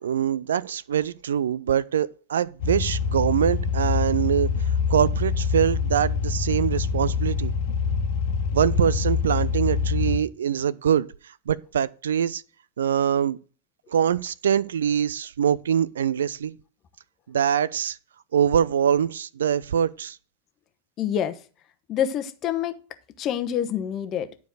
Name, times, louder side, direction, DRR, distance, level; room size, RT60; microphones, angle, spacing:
voice 1, 0.0-4.5 4.9-7.5 8.5-11.1 11.5-12.4 12.8-13.4 13.9-16.5 17.3-18.0 18.3-20.2, right 8 dB, 65° right, 0.4 m, -23 dB
sound 1, 2.6-10.2, left 5 dB, 50° left, 1.4 m, -25 dB
voice 2, 21.0-21.4 21.9-22.7 23.2-24.3, left 9 dB, 35° left, 1.0 m, -26 dB
11.5 x 4.7 x 6.3 m
figure-of-eight pair, 90°, 0 cm